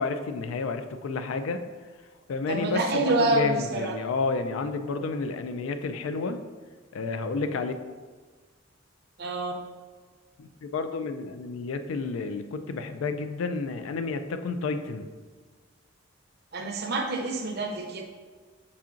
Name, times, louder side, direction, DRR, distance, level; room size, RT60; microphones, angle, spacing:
voice 1, 0.0-1.6 2.3-6.4 6.9-7.7 10.4-15.1, left 4 dB, 80° left, 9 dB, 0.3 m, -30 dB
voice 2, 2.5-4.0 9.2-9.5 16.5-18.0, right 2 dB, 50° right, 2 dB, 0.6 m, -27 dB
5.7 x 3.7 x 2.4 m, 1.4 s
head